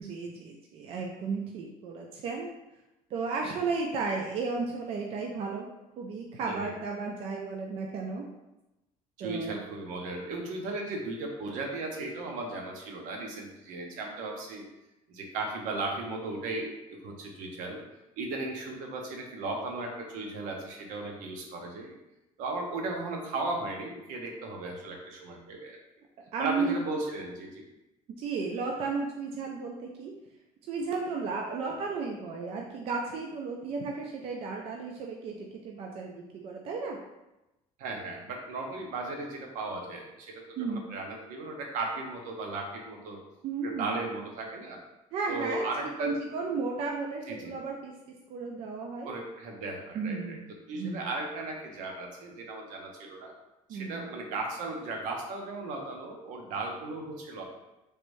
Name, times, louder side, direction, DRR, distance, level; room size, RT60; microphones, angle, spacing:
voice 1, 0.0-2.5 3.1-5.7 6.0-8.3 9.2-9.6 26.3-26.8 28.2-30.1 30.7-37.0 40.6-40.8 43.4-44.0 45.1-45.7 46.0-47.9 48.3-49.1 49.9-50.4 50.8-51.1 53.7-54.1, right 4 dB, 45° right, 0 dB, 0.4 m, -34 dB
voice 2, 9.2-14.6 15.1-17.8 18.2-21.9 22.4-25.8 26.4-27.6 37.8-43.2 43.6-44.8 45.3-46.1 47.3-47.6 49.0-50.4 50.7-53.3 53.7-57.4, right 2 dB, 75° right, 1 dB, 0.7 m, -36 dB
3.2 x 2.6 x 3.1 m, 0.95 s
cardioid pair, 170°, 13 cm